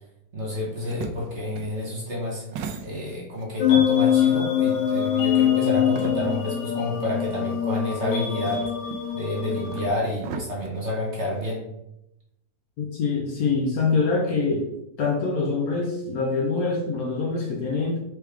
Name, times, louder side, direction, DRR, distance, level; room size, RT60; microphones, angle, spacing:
voice 1, 0.3-2.5 2.8-8.7 9.1-11.7, left 1 dB, 45° right, 1.1 m, -29 dB
sound 1, 0.6-3.4 3.8-6.6 7.0-7.1 7.9-11.5, right 6 dB, 80° right, 1.3 m, -39 dB
sound 2, 3.6-9.9, left 9 dB, 85° left, 1.5 m, -23 dB
voice 2, 12.8-14.7 15.0-18.0, left 4 dB, 65° left, 1.1 m, -24 dB
4.7 x 3.4 x 3.3 m
omnidirectional pair, 2.0 m